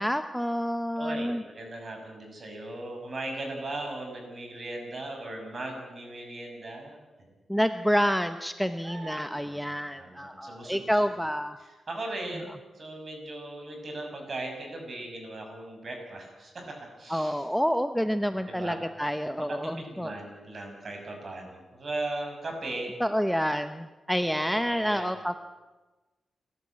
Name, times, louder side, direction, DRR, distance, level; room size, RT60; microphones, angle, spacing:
voice 1, 0.0-1.4 7.5-11.6 17.1-20.1 23.0-25.4, equal, ahead, 9 dB, 0.8 m, -28 dB
voice 2, 1.0-7.0 8.8-11.1 11.6-17.5 18.2-18.8 19.5-22.9 24.3-25.1, right 2 dB, 45° right, 3 dB, 6.6 m, -38 dB
29.0 x 13.0 x 8.7 m, 1.2 s
wide cardioid pair, 120°, 0 cm